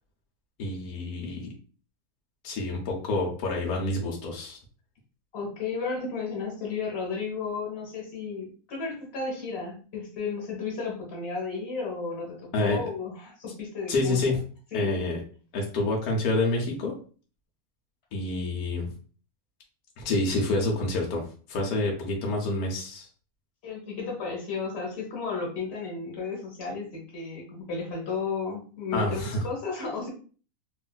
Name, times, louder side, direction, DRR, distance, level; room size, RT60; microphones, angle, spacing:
voice 1, 0.6-1.5 2.4-4.6 12.5-12.9 13.9-14.4 14.7-15.2 15.5-17.0 18.1-18.9 20.0-21.2 21.5-23.1 28.9-29.4, left 2 dB, 75° left, -1 dB, 1.2 m, -28 dB
voice 2, 5.3-14.3 14.7-14.9 23.6-30.1, left 4 dB, 45° left, -2 dB, 1.3 m, -33 dB
3.5 x 2.4 x 2.2 m, 0.39 s
omnidirectional pair, 1.6 m